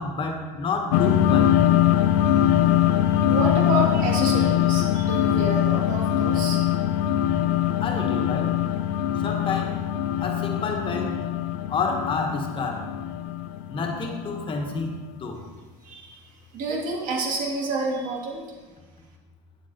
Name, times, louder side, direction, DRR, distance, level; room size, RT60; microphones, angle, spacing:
voice 1, 0.0-1.7 7.8-8.6 9.2-9.8 10.2-11.2 11.7-12.9 13.7-15.4, left 4 dB, 30° left, 3 dB, 1.6 m, -29 dB
sound 1, 0.9-14.9, left 11 dB, 70° left, 0.5 m, -22 dB
voice 2, 3.1-6.6 15.8-16.1 16.5-18.4, right 2 dB, 55° right, -1 dB, 2.8 m, -29 dB
9.7 x 7.5 x 4.4 m, 1.3 s
supercardioid pair, 115°, 17 cm